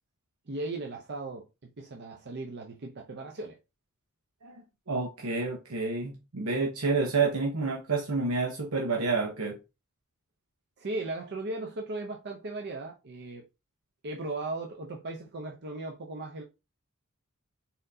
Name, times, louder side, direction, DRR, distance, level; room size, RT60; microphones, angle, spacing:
voice 1, 0.5-1.5 1.8-3.6 10.8-13.4 14.0-16.4, right 2 dB, 50° right, 0.6 m, -37 dB
voice 2, 4.9-9.6, right 4 dB, 85° right, 0.9 m, -29 dB
4.2 x 3.8 x 2.7 m
head